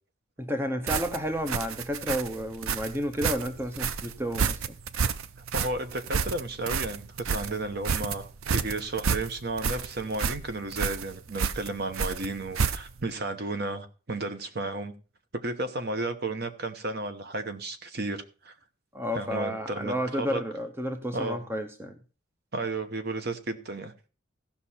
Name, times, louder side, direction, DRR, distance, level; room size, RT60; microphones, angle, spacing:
voice 1, 0.4-4.7 18.9-22.0, equal, 10° right, 0.7 m, -31 dB
sound 1, 0.9-13.1, right 6 dB, 75° right, 0.5 m, -30 dB
voice 2, 5.5-14.9 15.3-18.5 19.1-20.4 21.1-21.4 22.5-23.9, right 2 dB, 50° right, 0.9 m, -33 dB
15.5 x 5.8 x 4.3 m
head